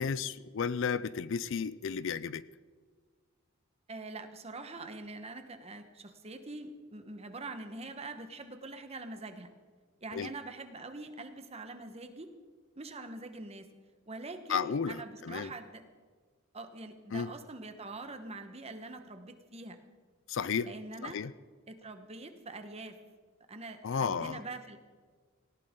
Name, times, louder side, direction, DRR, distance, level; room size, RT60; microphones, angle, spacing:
voice 1, 0.0-2.4 10.1-10.3 14.5-15.5 17.1-17.3 20.3-20.7 21.0-21.3 23.8-24.4, left 6 dB, 60° left, 17 dB, 0.5 m, -33 dB
voice 2, 3.9-9.5 10.0-12.3 12.8-13.7 14.1-15.8 16.5-19.8 20.6-21.2 21.7-23.0 23.5-24.8, right 2 dB, 30° right, 7 dB, 1.2 m, -44 dB
18.5 x 18.0 x 3.8 m, 1.5 s
head